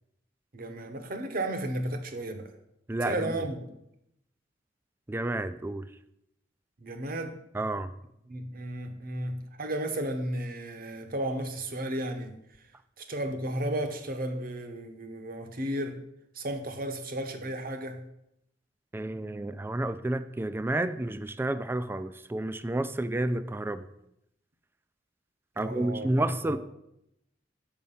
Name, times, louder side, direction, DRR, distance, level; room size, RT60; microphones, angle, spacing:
voice 1, 0.5-2.5 3.0-3.7 6.8-7.4 8.3-12.4 13.0-16.0 16.3-18.0 25.6-26.6, right 1 dB, 50° right, 6 dB, 1.0 m, -34 dB
voice 2, 2.9-3.4 5.1-5.8 7.5-7.9 18.9-23.9 25.6-26.6, right 1 dB, 10° right, 12 dB, 0.3 m, -30 dB
7.0 x 5.3 x 5.5 m, 0.80 s
head